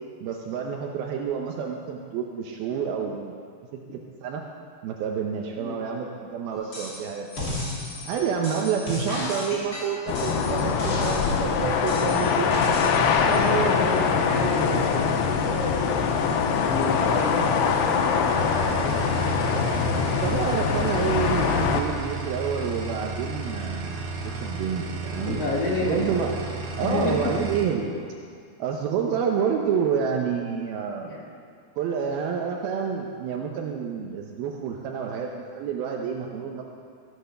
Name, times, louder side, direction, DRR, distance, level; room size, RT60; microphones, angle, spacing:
voice 1, 0.2-3.4 3.9-4.4 4.8-7.4 8.1-14.0 19.9-25.4 25.8-26.3 26.8-28.0 28.6-31.2 31.8-36.6, right 7 dB, 75° right, 1 dB, 2.6 m, -29 dB
sound 1, 6.7-7.0 7.3-11.4 11.9-13.0 13.3-13.4, left 1 dB, 30° left, 2.5 m, -33 dB
sound 2, 10.1-21.8, left 6 dB, 85° left, 2.8 m, -23 dB
voice 2, 12.0-12.5 13.2-19.7 25.2-26.1 26.8-27.3 31.1-31.2, left 2 dB, 55° left, -3 dB, 1.8 m, -30 dB
sound 3, 18.3-27.7, right 3 dB, 60° right, 2.5 m, -33 dB
15.0 x 8.3 x 6.7 m, 2.3 s
omnidirectional pair, 4.6 m